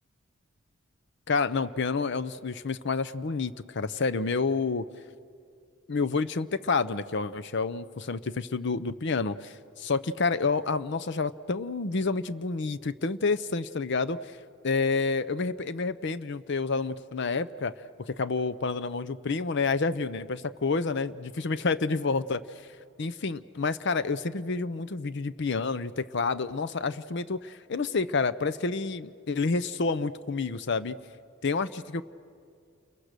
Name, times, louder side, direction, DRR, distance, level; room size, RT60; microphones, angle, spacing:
voice 1, 1.3-4.9 5.9-14.2 14.6-17.7 18.0-22.4 23.0-31.0 31.4-32.0, left 4 dB, 55° left, 15 dB, 0.7 m, -29 dB
29.5 x 23.0 x 6.7 m, 2.5 s
head